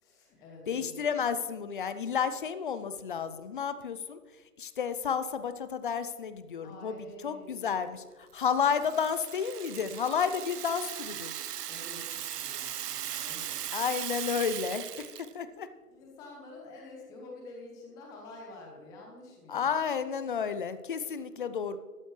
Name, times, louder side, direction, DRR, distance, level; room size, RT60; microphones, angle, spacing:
voice 1, 0.0-1.0 6.6-7.9 11.7-13.6 15.9-19.7, left 2 dB, 10° left, 0 dB, 0.8 m, -49 dB
voice 2, 0.7-4.2 4.6-7.0 7.2-11.4 13.7-15.1 15.3-15.7 19.5-21.8, left 7 dB, 35° left, 12 dB, 0.6 m, -31 dB
Rattle (instrument), 8.4-15.3, right 10 dB, 85° right, 0.6 m, -38 dB
13.0 x 12.5 x 3.3 m, 1.4 s
hypercardioid pair, 150°, 46 cm